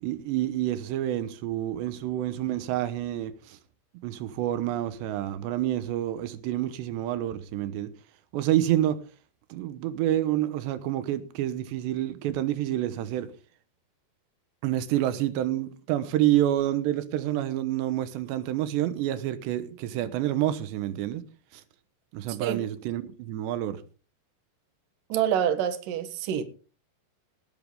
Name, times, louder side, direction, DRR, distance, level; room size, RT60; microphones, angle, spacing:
voice 1, 0.0-3.6 4.0-7.9 8.3-9.0 9.5-13.3 14.6-21.2 21.5-21.6 22.1-23.8, right 13 dB, 90° right, 3.3 m, -28 dB
voice 2, 25.1-26.4, right 9 dB, 60° right, 2.9 m, -26 dB
18.5 x 12.5 x 3.6 m
omnidirectional pair, 4.9 m